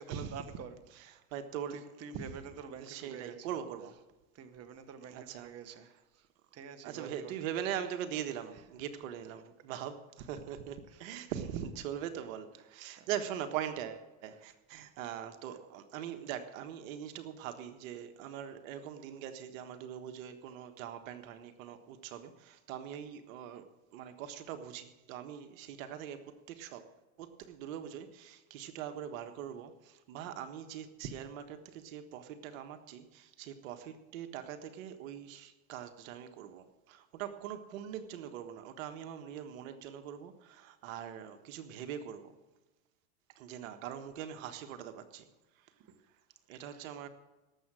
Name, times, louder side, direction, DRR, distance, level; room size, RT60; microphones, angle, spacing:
voice 1, 0.0-0.8 1.7-3.5 4.3-5.9 6.1-6.3 6.5-7.3 10.9-11.1 13.0-13.1 45.9-46.0 46.7-46.9, right 6 dB, 35° right, 9 dB, 1.4 m, -47 dB
voice 2, 0.9-1.8 2.1-2.3 2.8-4.0 5.1-5.8 6.8-26.9 27.2-42.3 43.3-45.3 45.6-45.7 46.5-47.1, right 9 dB, 75° right, 8 dB, 1.4 m, -42 dB
18.5 x 7.7 x 6.2 m, 1.1 s
supercardioid pair, 110°, 41 cm